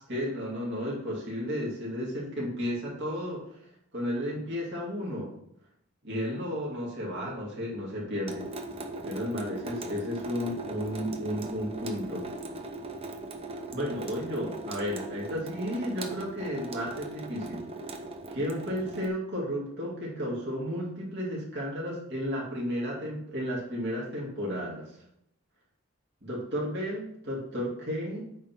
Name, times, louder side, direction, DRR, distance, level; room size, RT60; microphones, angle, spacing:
voice 1, 0.1-3.7 3.9-5.3 6.0-8.5 9.0-12.2 13.7-17.6 18.3-25.0 26.2-28.2, equal, 50° right, -5 dB, 2.7 m, -33 dB
Water tap faucet / Sink (filling or washing) / Drip, 8.3-19.1, right 2 dB, 25° right, 0.7 m, -39 dB
9.0 x 3.7 x 6.0 m, 0.74 s
head